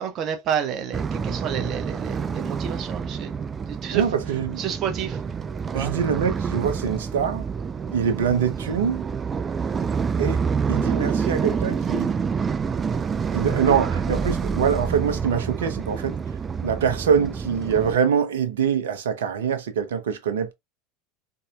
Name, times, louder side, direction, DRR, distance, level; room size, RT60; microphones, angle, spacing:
voice 1, 0.0-3.3 3.7-4.1 4.6-5.2 5.7-6.0, right 8 dB, 45° right, 0.9 m, -29 dB
sound 1, 0.9-18.0, right 6 dB, 25° right, 0.4 m, -27 dB
voice 2, 3.9-4.6 5.7-7.5 7.9-9.0 10.2-10.4 10.7-12.2 13.3-16.2 16.6-20.5, right 7 dB, 75° right, 0.9 m, -24 dB
3.9 x 3.9 x 2.4 m
figure-of-eight pair, 75°, 0 cm